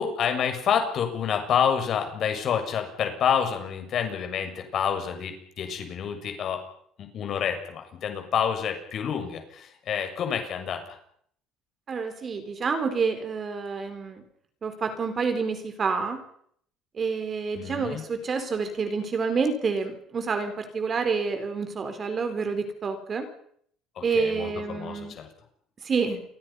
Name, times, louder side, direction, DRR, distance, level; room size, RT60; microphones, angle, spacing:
voice 1, 0.0-6.6 7.0-10.8 17.6-18.0 23.9-25.3, left 8 dB, 45° left, 5 dB, 6.8 m, -28 dB
voice 2, 11.9-14.2 14.6-16.2 16.9-23.3 24.0-25.1 25.8-26.2, right 5 dB, 30° right, 7 dB, 4.6 m, -28 dB
29.5 x 23.5 x 5.8 m, 0.66 s
cardioid pair, 135°, 0 cm